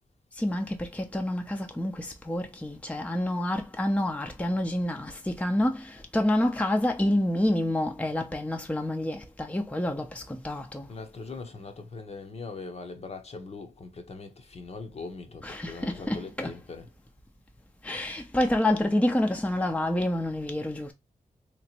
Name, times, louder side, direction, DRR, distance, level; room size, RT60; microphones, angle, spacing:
voice 1, 0.4-10.9 15.4-16.5 17.8-20.9, left 1 dB, 10° left, 0.6 m, -28 dB
voice 2, 10.9-16.9, left 3 dB, 45° left, 0.8 m, -41 dB
3.3 x 3.0 x 2.9 m
cardioid pair, 70°, 14 cm